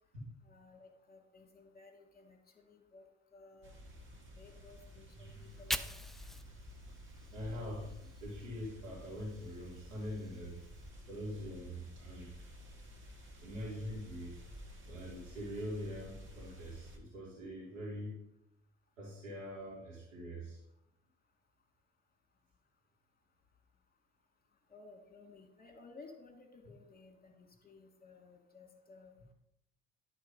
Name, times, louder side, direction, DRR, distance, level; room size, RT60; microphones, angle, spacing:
voice 1, 0.4-3.8 4.3-5.9 24.7-29.2, left 3 dB, 25° left, 4 dB, 2.0 m, -57 dB
sound 1, 3.6-17.0, equal, 30° right, 2.0 m, -52 dB
Fire, 5.3-8.5 8.8-10.9, equal, ahead, 0.3 m, -45 dB
voice 2, 5.3-5.6 6.8-6.9 7.3-10.6 11.1-12.3 13.4-14.3 14.9-18.2 19.0-20.6, equal, 85° right, -7 dB, 2.6 m, -43 dB
11.0 x 4.0 x 5.4 m, 0.83 s
figure-of-eight pair, 55°, 37 cm